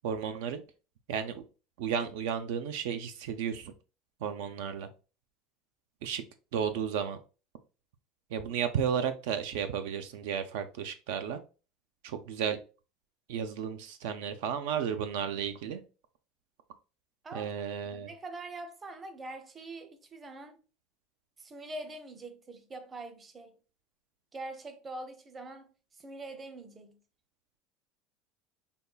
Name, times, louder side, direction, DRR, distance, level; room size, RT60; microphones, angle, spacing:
voice 1, 0.0-0.6 1.1-1.4 1.8-3.7 4.2-4.9 6.0-6.2 6.5-7.2 8.3-11.4 12.0-12.6 13.3-15.8 17.3-18.1, right 8 dB, 80° right, 0.4 m, -33 dB
voice 2, 17.9-20.6 21.4-23.6 24.3-27.0, right 2 dB, 20° right, 0.6 m, -44 dB
5.2 x 2.3 x 2.3 m
supercardioid pair, 125°, 0 cm